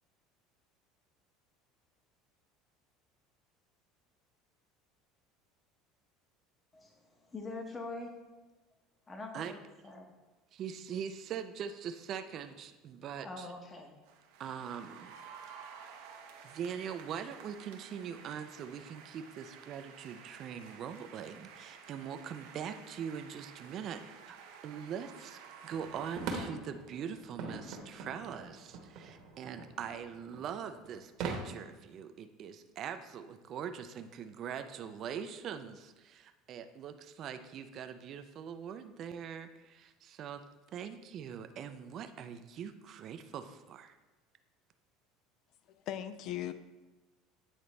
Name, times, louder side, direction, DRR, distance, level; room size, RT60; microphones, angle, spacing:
voice 1, 6.7-8.1 9.1-10.1 13.2-13.9, left 2 dB, 20° left, 3 dB, 0.9 m, -44 dB
voice 2, 10.5-13.5 14.4-15.1 16.4-24.4 24.6-40.4 40.7-44.0, right 8 dB, 45° right, 9 dB, 0.4 m, -42 dB
sound 1, 14.0-26.5, right 6 dB, 85° right, 0.8 m, -53 dB
sound 2, 25.7-31.4, right 4 dB, 65° right, 1.1 m, -43 dB
voice 3, 45.7-46.5, left 11 dB, 55° left, 12 dB, 0.4 m, -38 dB
8.7 x 3.9 x 3.2 m, 1.2 s
supercardioid pair, 125°, 0 cm